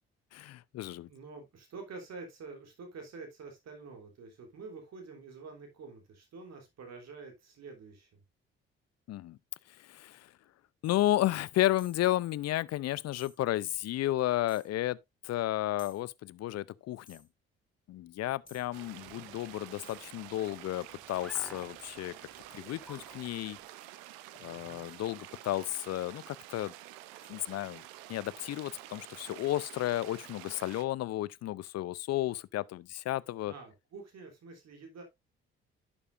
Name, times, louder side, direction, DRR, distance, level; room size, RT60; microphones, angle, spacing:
voice 1, 0.3-1.1 9.1-9.4 9.8-10.3 10.8-15.0 15.2-17.2 17.9-22.2 22.5-23.6 24.4-26.7 27.3-27.8 28.1-33.5, left 14 dB, 55° left, 0.6 m, -33 dB
voice 2, 1.0-8.2 19.1-19.3 24.4-24.9 33.4-35.0, right 4 dB, 60° right, 3.3 m, -48 dB
sound 1, 11.8-12.1 13.2-13.4 14.5-14.7 15.8-16.0 17.1-17.3 18.5-18.7 19.8-20.1 21.1-24.0 24.5-27.6, left 3 dB, 30° left, 3.2 m, -59 dB
sound 2, 18.4-23.7, left 1 dB, ahead, 2.1 m, -56 dB
sound 3, 18.7-30.8, right 15 dB, 80° right, 0.8 m, -49 dB
11.0 x 7.2 x 2.6 m
hypercardioid pair, 45°, 30 cm